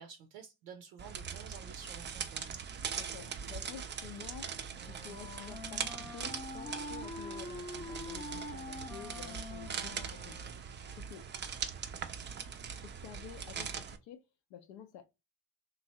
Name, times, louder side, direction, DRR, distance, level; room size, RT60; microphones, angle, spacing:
voice 1, 0.0-2.6, right 7 dB, 75° right, 0.6 m, -51 dB
sound 1, 1.0-14.0, right 7 dB, 25° right, 0.4 m, -41 dB
voice 2, 2.9-4.6 4.9-10.4 10.9-11.3 12.8-14.3 14.5-15.0, left 9 dB, 70° left, 0.5 m, -50 dB
Wind instrument woodwind instrument, 4.6-10.7, left 2 dB, 15° left, 0.7 m, -45 dB
3.0 x 2.5 x 2.8 m
figure-of-eight pair, 40°, 48 cm